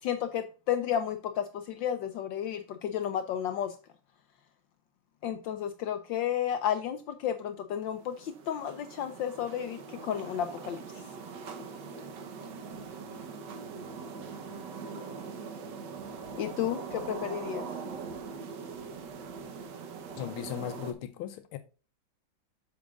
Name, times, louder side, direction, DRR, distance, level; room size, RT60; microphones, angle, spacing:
voice 1, 0.0-3.8 5.2-10.8 16.4-17.7, left 9 dB, 70° left, 1.3 m, -32 dB
sound 1, 7.7-20.9, right 5 dB, 60° right, 1.6 m, -42 dB
voice 2, 20.2-21.6, left 11 dB, 90° left, 1.5 m, -37 dB
8.4 x 7.3 x 2.4 m
omnidirectional pair, 2.3 m